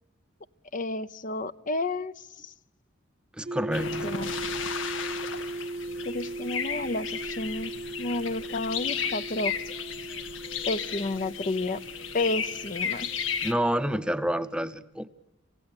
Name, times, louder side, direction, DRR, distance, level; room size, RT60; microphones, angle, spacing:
voice 1, 0.7-2.5 4.0-4.3 6.0-7.7 8.0-9.6 10.7-11.8 12.1-13.1, left 2 dB, 45° left, 13 dB, 0.8 m, -31 dB
voice 2, 3.4-3.9 13.4-15.1, equal, 5° right, 12 dB, 0.8 m, -28 dB
sound 1, 3.4-14.2, right 2 dB, 35° right, 0.8 m, -38 dB
sound 2, 3.7-13.5, left 7 dB, 90° left, 1.6 m, -34 dB
27.0 x 16.5 x 8.7 m, 0.86 s
head